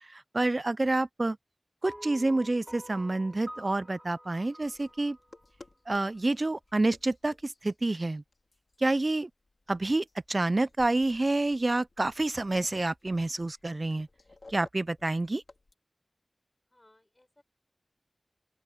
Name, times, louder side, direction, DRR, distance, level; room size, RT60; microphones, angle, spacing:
voice 1, 0.1-1.4 1.8-5.2 5.9-8.2 8.8-9.3 9.7-14.1 14.5-15.4, right 2 dB, 45° right, 0.4 m, -28 dB
sound 1, 1.8-6.2, equal, 10° right, 5.6 m, -48 dB
sound 2, 4.6-15.7, left 3 dB, 65° left, 4.3 m, -58 dB
voice 2, 16.7-17.4, left 1 dB, 30° left, 7.2 m, -63 dB
open air
wide cardioid pair, 55°, 0 cm